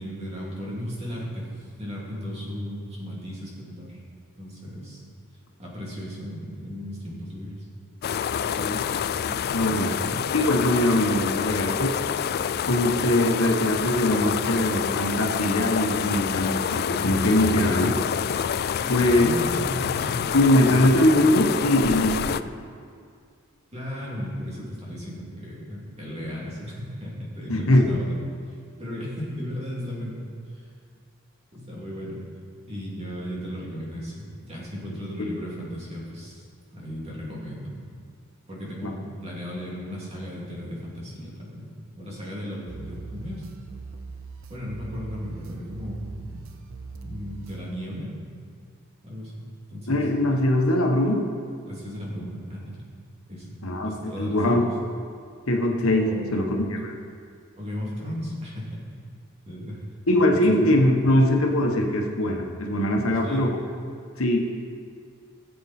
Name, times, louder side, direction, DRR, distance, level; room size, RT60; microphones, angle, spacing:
voice 1, 0.0-4.0 4.4-5.0 5.6-7.6 9.7-10.2 18.8-20.3 20.7-21.0 23.7-28.2 28.8-30.7 31.5-32.2 32.7-36.4 36.7-37.7 38.5-41.7 42.0-43.5 44.5-46.4 47.0-48.4 49.0-50.0 51.7-52.8 53.3-54.7 56.0-56.7 57.6-58.8 59.5-59.8 60.3-60.8 63.1-63.5, equal, 30° right, -5 dB, 2.9 m, -35 dB
sound 1, 8.0-22.4, left 8 dB, 50° left, 0.3 m, -27 dB
voice 2, 8.6-8.9 9.2-9.9 10.3-12.0 12.7-18.0 18.9-19.3 20.3-22.4 27.5-27.9 35.2-35.4 38.8-38.9 49.9-51.3 53.6-54.7 55.5-57.0 60.1-63.5 64.2-64.5, left 1 dB, 90° left, 2 dB, 1.3 m, -22 dB
sound 2, 42.7-47.7, right 4 dB, 70° right, 0.8 m, -41 dB
16.0 x 7.8 x 4.4 m, 2.2 s
head